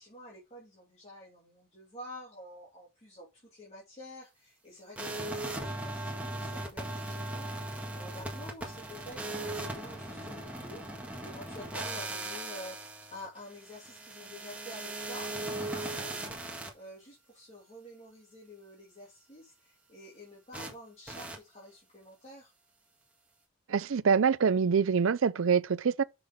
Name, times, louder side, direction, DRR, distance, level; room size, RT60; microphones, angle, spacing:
voice 1, 0.0-16.3 16.7-22.5, left 1 dB, 30° left, 2.7 m, -49 dB
Wireless printer startup, 5.0-16.7 20.5-20.7 21.1-21.4, right 1 dB, 5° right, 1.7 m, -38 dB
voice 2, 23.7-26.0, right 6 dB, 75° right, 0.5 m, -25 dB
6.4 x 6.0 x 3.6 m
head